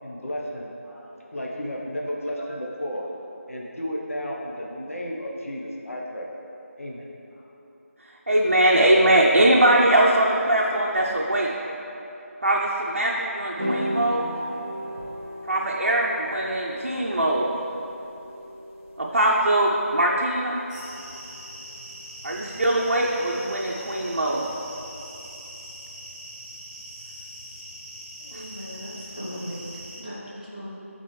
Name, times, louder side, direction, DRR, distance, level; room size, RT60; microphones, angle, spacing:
voice 1, 0.0-3.2 3.5-6.3 6.8-7.1, equal, 65° left, -2 dB, 0.9 m, -33 dB
voice 2, 8.3-11.5 12.4-14.2 15.5-17.5 19.0-20.6 22.2-24.5, right 1 dB, 50° right, -4 dB, 0.6 m, -21 dB
sound 1, 13.6-22.0, equal, 5° left, 0.5 m, -36 dB
sound 2, 20.7-30.0, equal, 20° right, 1.0 m, -42 dB
voice 3, 28.2-29.7 30.0-30.7, equal, 30° left, -7 dB, 1.1 m, -37 dB
11.0 x 4.1 x 3.2 m, 2.9 s
figure-of-eight pair, 180°, 8 cm